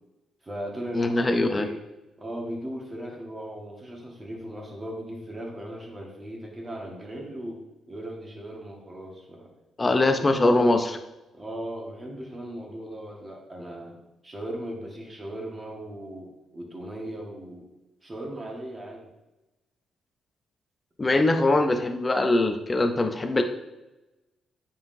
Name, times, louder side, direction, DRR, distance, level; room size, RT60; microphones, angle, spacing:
voice 1, 0.4-1.8 2.2-9.5 9.8-10.8 11.3-17.7 18.0-19.1 21.1-21.6, right 1 dB, 20° right, -2 dB, 1.6 m, -38 dB
voice 2, 0.9-1.7 9.8-11.0 21.0-23.4, left 2 dB, 20° left, 6 dB, 0.6 m, -22 dB
9.5 x 5.6 x 2.7 m, 1.0 s
cardioid pair, 155°, 0 cm